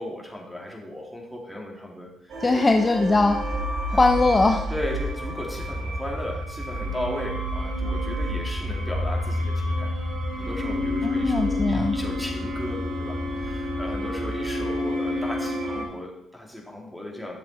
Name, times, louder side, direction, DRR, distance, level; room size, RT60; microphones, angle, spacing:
voice 1, 0.0-2.6 3.9-4.0 4.7-9.9 10.4-17.4, left 1 dB, 5° right, -1 dB, 2.8 m, -36 dB
sound 1, 2.3-15.8, left 1 dB, 55° right, 3.4 m, -29 dB
voice 2, 2.4-3.4 3.9-4.7 11.0-12.0, left 3 dB, 25° left, 4 dB, 0.8 m, -20 dB
10.5 x 7.0 x 4.4 m, 0.82 s
cardioid pair, 90°, 0 cm